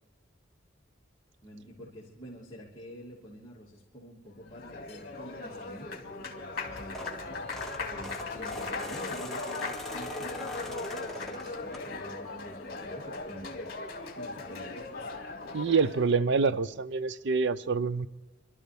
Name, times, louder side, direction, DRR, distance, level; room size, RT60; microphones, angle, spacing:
voice 1, 1.4-7.0 7.6-14.9, equal, 20° left, 2.8 m, -48 dB
Applause, 4.3-16.1, left 3 dB, 55° left, 2.3 m, -39 dB
sound 1, 6.6-12.2 12.7-13.0 14.2-14.3 14.5-14.6 15.0-15.1, left 1 dB, ahead, 1.6 m, -42 dB
voice 2, 15.5-18.1, right 4 dB, 65° right, 0.5 m, -26 dB
26.0 x 13.0 x 3.5 m
head